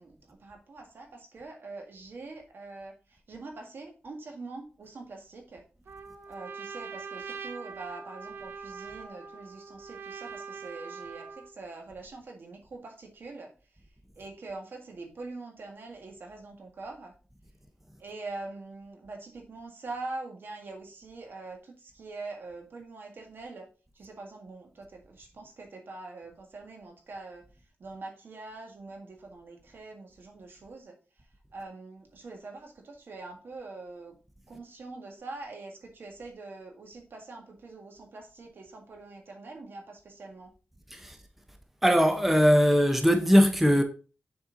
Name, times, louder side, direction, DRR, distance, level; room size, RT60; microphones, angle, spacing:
voice 1, 0.0-5.6 6.3-13.5 14.2-17.1 18.0-23.7 24.0-27.5 27.8-31.0 31.5-34.1 34.5-40.5, right 3 dB, 60° right, 1.8 m, -44 dB
Trumpet, 5.9-11.5, right 5 dB, 80° right, 0.9 m, -42 dB
voice 2, 41.8-43.8, equal, 5° right, 0.9 m, -20 dB
7.1 x 4.4 x 3.9 m
wide cardioid pair, 105°, 4 cm